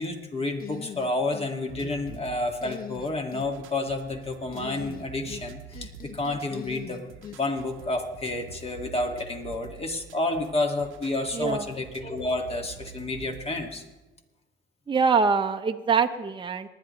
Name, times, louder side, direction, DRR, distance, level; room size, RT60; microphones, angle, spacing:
voice 1, 0.0-13.8, left 2 dB, 30° left, 3 dB, 2.1 m, -30 dB
sound 1, 0.6-1.5 1.8-2.2 2.6-3.5 4.5-5.5 5.7-7.4, left 8 dB, 45° left, 1.0 m, -40 dB
sound 2, 1.7-13.7, right 7 dB, 85° right, 0.9 m, -47 dB
voice 2, 11.3-11.7 14.9-16.7, right 5 dB, 25° right, 5 dB, 0.8 m, -24 dB
27.0 x 10.5 x 3.2 m, 1.1 s
cardioid pair, 90°, 20 cm